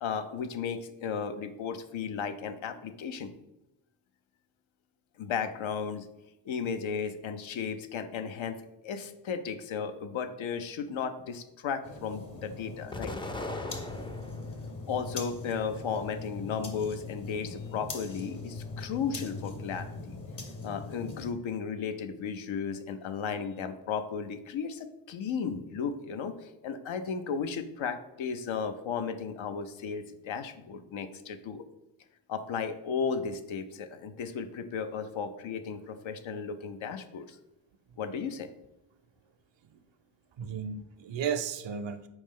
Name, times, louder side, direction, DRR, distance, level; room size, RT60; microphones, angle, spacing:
voice 1, 0.0-3.3 5.2-6.1 6.5-13.1 14.9-20.2 20.6-31.6 32.3-37.4 38.0-38.5, left 6 dB, 75° left, 9 dB, 0.6 m, -35 dB
sound 1, 11.8-21.3, left 3 dB, 40° left, 1.0 m, -41 dB
Explosion, 12.9-14.6 15.1-16.0, left 1 dB, 10° left, 0.4 m, -39 dB
voice 2, 40.4-42.1, right 7 dB, 65° right, 11 dB, 0.5 m, -34 dB
4.3 x 3.1 x 3.6 m, 0.92 s
cardioid pair, 40°, 48 cm